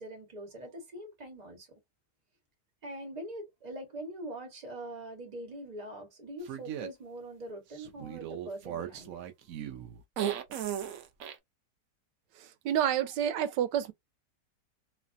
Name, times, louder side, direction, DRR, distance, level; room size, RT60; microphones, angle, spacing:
voice 1, 0.0-1.7 2.8-9.2, right 1 dB, 30° right, 1.0 m, -43 dB
sound 1, 6.5-6.9 7.8-11.4, right 10 dB, 65° right, 0.9 m, -36 dB
voice 2, 12.6-13.9, right 10 dB, 85° right, 1.3 m, -28 dB
3.2 x 2.1 x 2.5 m
omnidirectional pair, 1.9 m